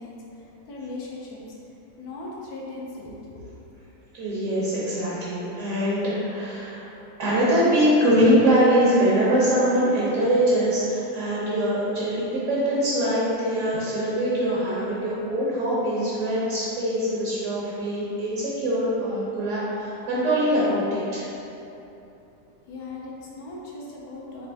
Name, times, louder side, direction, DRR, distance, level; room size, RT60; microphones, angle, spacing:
voice 1, 0.0-1.6 2.0-3.5 22.6-24.5, left 2 dB, 70° left, -4 dB, 1.1 m, -38 dB
voice 2, 4.1-6.9 7.2-21.2, equal, 55° right, -7 dB, 1.0 m, -23 dB
4.2 x 3.2 x 3.3 m, 2.9 s
omnidirectional pair, 1.8 m